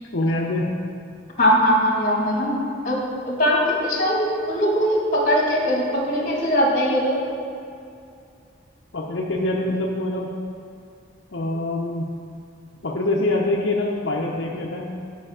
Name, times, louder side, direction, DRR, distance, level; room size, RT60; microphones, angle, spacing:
voice 1, 0.1-0.7 8.9-10.3 11.3-12.1 12.8-14.9, left 2 dB, 75° left, -3 dB, 0.7 m, -24 dB
voice 2, 1.4-7.2, equal, 40° left, -2 dB, 1.8 m, -21 dB
10.0 x 5.7 x 4.9 m, 2.5 s
head